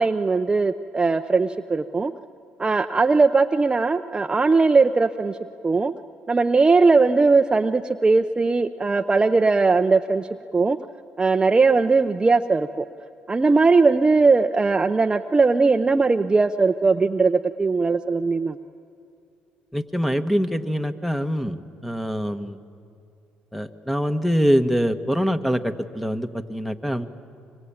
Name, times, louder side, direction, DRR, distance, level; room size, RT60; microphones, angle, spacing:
voice 1, 0.0-2.1 2.6-5.4 5.6-5.9 6.3-10.8 11.2-12.9 13.3-18.6, right 4 dB, 25° right, 7 dB, 0.7 m, -19 dB
voice 2, 19.7-22.6 23.5-27.1, equal, ahead, 8 dB, 1.4 m, -24 dB
25.0 x 24.0 x 8.8 m, 2.5 s
supercardioid pair, 75°, 4 cm